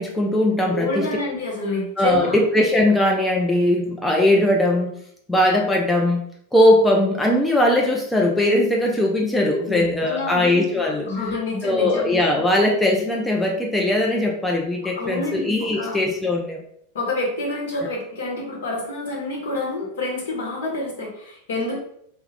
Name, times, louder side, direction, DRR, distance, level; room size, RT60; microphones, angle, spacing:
voice 1, 0.0-1.1 2.0-4.9 5.3-6.2 6.5-11.1 11.6-16.6, left 1 dB, 10° left, -1 dB, 0.3 m, -20 dB
voice 2, 0.7-2.4 9.7-10.5 10.7-12.1 15.0-16.0 16.9-21.8, left 2 dB, 60° left, -2 dB, 0.9 m, -28 dB
2.2 x 2.1 x 3.2 m, 0.70 s
figure-of-eight pair, 90°, 0 cm